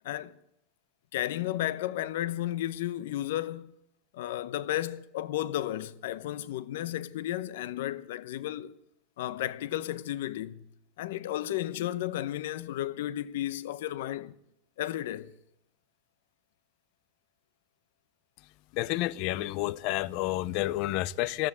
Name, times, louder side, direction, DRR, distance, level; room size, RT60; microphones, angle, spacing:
voice 1, 1.1-3.8 4.1-8.7 9.2-10.6 11.0-14.4 14.8-15.3, left 13 dB, 80° left, 0.8 m, -33 dB
voice 2, 18.7-21.5, left 17 dB, 50° left, 0.6 m, -30 dB
13.0 x 13.0 x 8.0 m
supercardioid pair, 155°, 0 cm